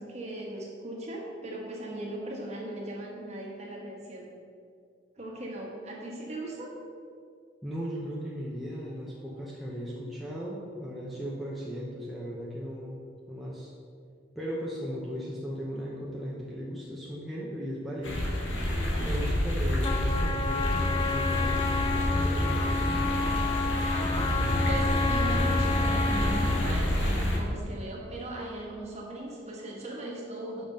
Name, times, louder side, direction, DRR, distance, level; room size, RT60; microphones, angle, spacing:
voice 1, 0.0-4.3 5.2-6.7 24.7-30.6, right 1 dB, 35° right, -2 dB, 1.3 m, -38 dB
voice 2, 7.6-13.0 13.3-13.7 14.4-18.2 19.0-23.0, equal, ahead, -7 dB, 0.7 m, -37 dB
sound 1, 18.0-27.4, left 1 dB, 85° left, 1.6 m, -28 dB
Trumpet, 19.8-26.8, left 4 dB, 25° left, 0.3 m, -31 dB
5.8 x 5.6 x 5.2 m, 2.2 s
head